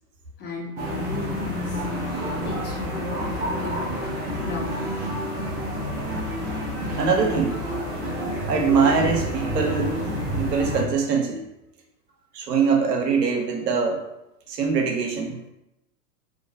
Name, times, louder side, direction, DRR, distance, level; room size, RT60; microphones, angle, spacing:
voice 1, 0.4-1.8 2.4-3.8 4.4-5.0, left 3 dB, 20° left, -3 dB, 0.7 m, -35 dB
sound 1, 0.8-10.8, equal, 20° right, 0.4 m, -29 dB
voice 2, 7.0-7.6 8.5-11.4 12.3-14.1 14.5-15.4, right 5 dB, 85° right, 2 dB, 0.7 m, -23 dB
2.4 x 2.2 x 2.7 m, 0.89 s
hypercardioid pair, 105°, 48 cm